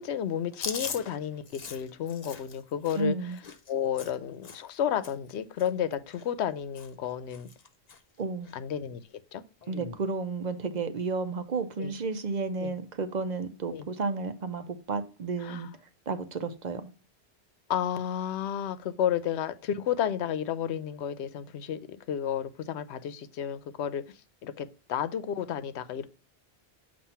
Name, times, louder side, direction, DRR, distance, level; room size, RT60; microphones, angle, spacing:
voice 1, 0.0-3.4 3.7-7.5 8.5-9.0 9.3-9.4 11.8-11.9 12.6-12.7 13.7-13.9 15.4-15.7 17.7-21.8 22.1-24.0 24.4-26.1, left 9 dB, 85° left, 0.9 m, -32 dB
Chewing mastication, 0.5-4.8 5.0-5.3 5.6-6.5 6.7-7.1 7.3-8.0 8.4-8.6 9.6-10.0, left 5 dB, 45° left, 0.7 m, -41 dB
voice 2, 2.9-3.4 8.2-8.5 9.7-15.7 16.1-16.9, right 4 dB, 50° right, 0.7 m, -32 dB
7.3 x 2.6 x 5.5 m
omnidirectional pair, 1.1 m